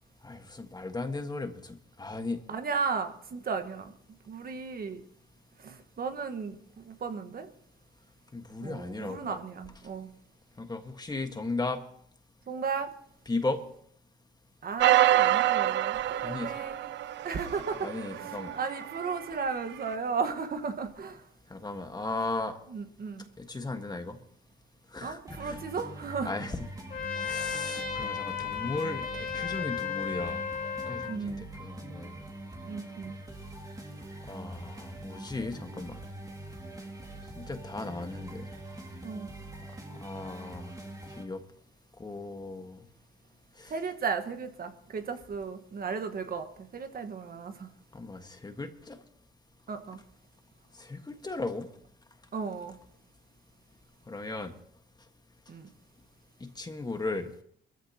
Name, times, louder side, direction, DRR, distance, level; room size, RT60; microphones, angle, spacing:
voice 1, 0.2-2.4 8.3-9.4 10.6-11.8 13.3-13.6 16.2-16.6 17.8-18.6 21.5-22.6 23.4-24.2 24.9-25.6 26.2-26.6 27.2-30.4 30.9-32.2 34.3-36.0 37.3-38.5 40.0-40.7 41.2-41.4 42.0-42.8 43.6-43.7 47.9-49.0 50.8-51.7 54.1-54.5 56.4-57.3, left 3 dB, 20° left, 6 dB, 1.6 m, -36 dB
voice 2, 2.5-3.9 4.3-5.0 5.6-7.5 8.6-10.1 12.5-12.9 14.6-16.9 17.2-21.3 22.7-23.2 25.0-26.3 31.1-31.4 32.7-33.1 39.0-39.3 43.7-47.7 49.7-50.0 52.3-52.7 55.5-55.7, right 5 dB, 50° right, 7 dB, 1.5 m, -35 dB
sound 1, 14.8-19.3 19.9-20.0, right 13 dB, 65° right, 0.6 m, -27 dB
sound 2, 25.3-41.2, right 1 dB, 15° right, 2.3 m, -44 dB
Trumpet, 26.9-31.2, left 7 dB, 45° left, 1.9 m, -34 dB
23.5 x 14.5 x 3.0 m, 0.66 s
cardioid pair, 90°, 20 cm